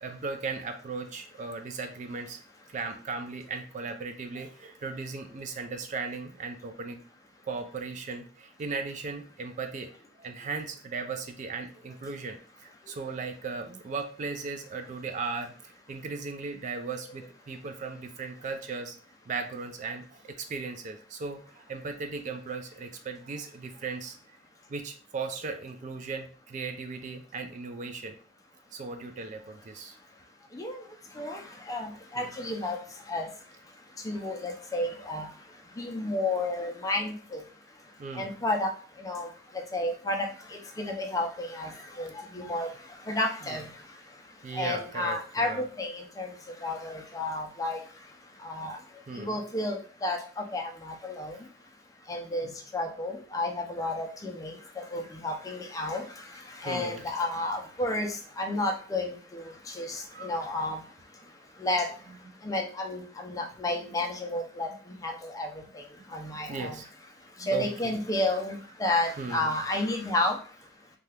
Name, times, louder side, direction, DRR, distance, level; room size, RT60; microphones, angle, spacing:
voice 1, 0.0-2.4 2.7-7.0 7.5-9.9 10.2-15.5 15.9-19.0 19.3-24.2 24.7-28.2 28.7-29.9 32.2-32.3 38.0-38.3 42.3-42.5 43.5-43.6 44.4-45.6 49.1-49.4 51.3-51.4 52.4-52.5 56.6-57.0 60.1-60.4 64.7-64.8 66.1-66.9 67.4-68.0 69.2-69.5, right 4 dB, 40° right, 6 dB, 0.3 m, -37 dB
voice 2, 31.7-32.8 33.1-33.3 34.0-35.3 35.8-37.4 38.2-38.7 39.0-39.3 39.7-40.3 40.8-41.7 42.0-42.7 43.1-43.7 44.6-46.3 46.6-47.8 48.4-48.8 49.2-50.2 50.5-51.4 52.1-52.5 52.7-56.0 56.6-58.1 58.4-59.4 59.8-60.8 61.6-61.9 62.4-64.7 65.0-65.5 66.1-66.7 67.5-70.3, left 2 dB, 20° left, 2 dB, 0.4 m, -31 dB
2.8 x 2.3 x 3.3 m, 0.41 s
head